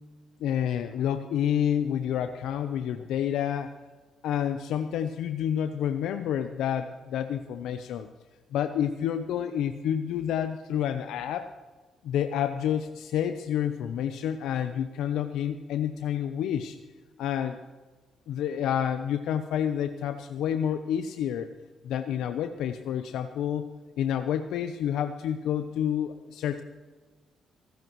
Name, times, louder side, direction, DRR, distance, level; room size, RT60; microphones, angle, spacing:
voice 1, 0.4-3.7 4.2-8.1 8.5-11.5 12.0-16.8 17.2-17.6 18.3-21.5 21.8-23.7 24.0-26.6, left 9 dB, 85° left, 8 dB, 0.8 m, -29 dB
24.5 x 13.0 x 3.2 m, 1.3 s
cardioid pair, 90°, 0 cm